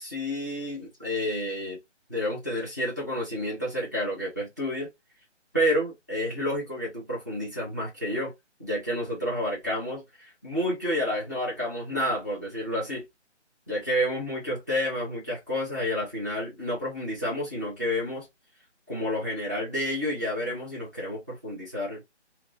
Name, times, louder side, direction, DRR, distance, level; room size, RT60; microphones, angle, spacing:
voice 1, 0.0-1.8 2.1-4.9 5.5-8.3 8.6-13.0 13.7-18.3 18.9-22.0, equal, 15° right, 0.6 m, -30 dB
2.7 x 2.1 x 2.4 m
figure-of-eight pair, 165°, 36 cm